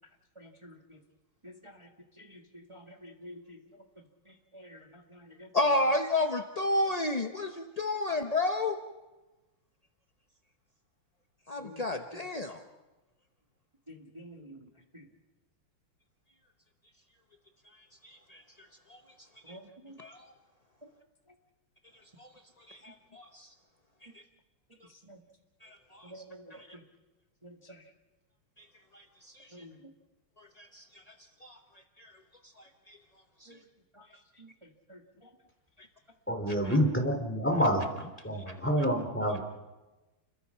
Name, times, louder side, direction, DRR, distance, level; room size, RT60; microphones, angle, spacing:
voice 1, 2.7-3.4 4.5-4.8 5.4-5.5 11.6-11.8 14.1-14.5 19.5-19.6 25.1-25.2 26.1-26.4 29.5-29.7 34.9-35.0, equal, 15° right, 2 dB, 1.7 m, -47 dB
voice 2, 5.5-8.8 11.5-12.6 17.8-19.0 19.5-19.6 20.0-20.3 22.2-22.3 22.6-23.5 24.0-24.2 25.6-26.2 26.5-26.7 28.6-28.7 28.9-29.7 30.4-31.1 31.4-31.6 32.0-32.2 32.6-33.0 33.4-33.6 36.5-36.8 38.5-38.6, left 2 dB, 35° left, 5 dB, 0.6 m, -33 dB
voice 3, 36.3-39.4, equal, 5° left, 3 dB, 2.9 m, -28 dB
29.5 x 22.0 x 5.9 m, 1.1 s
omnidirectional pair, 2.4 m